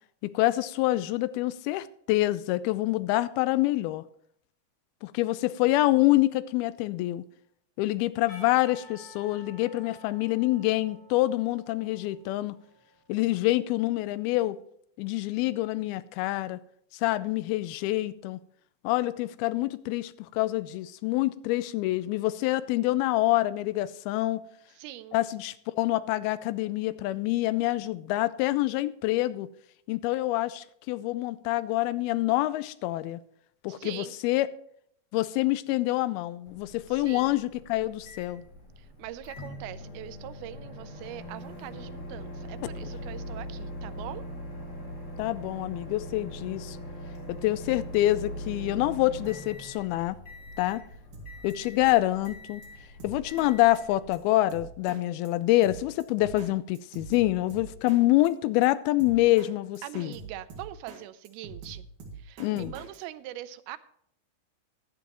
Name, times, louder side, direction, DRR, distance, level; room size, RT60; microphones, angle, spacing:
voice 1, 0.2-4.0 5.0-7.2 7.8-12.6 13.1-14.6 15.0-16.6 16.9-18.4 18.8-24.4 25.1-29.5 29.9-33.2 33.6-34.5 35.1-38.4 45.2-46.8 47.3-50.2 50.6-50.8 51.4-52.6 53.0-60.1 62.4-62.7, left 17 dB, 85° left, 16 dB, 2.4 m, -26 dB
Percussion, 8.3-13.1, right 1 dB, 50° left, 6.0 m, -52 dB
voice 2, 24.8-25.2 33.7-34.2 36.9-37.4 38.8-44.3 59.8-61.9 62.2-63.8, right 14 dB, 90° right, 14 dB, 2.5 m, -42 dB
Microwave oven, 36.5-54.4, equal, 30° left, 2.3 m, -41 dB
Drum kit, 51.1-51.5 51.9-52.0 52.2-52.3 52.6-52.7 53.0-53.5 53.7-53.8 54.1-54.2 54.5-55.0 55.2-55.3 55.6-56.5 56.7-58.0 58.2-58.3 58.6-58.7 59.0-59.5 59.7-61.0 61.2-63.0, right 4 dB, 60° right, 2.9 m, -44 dB
15.0 x 11.0 x 3.0 m, 0.68 s
omnidirectional pair, 4.4 m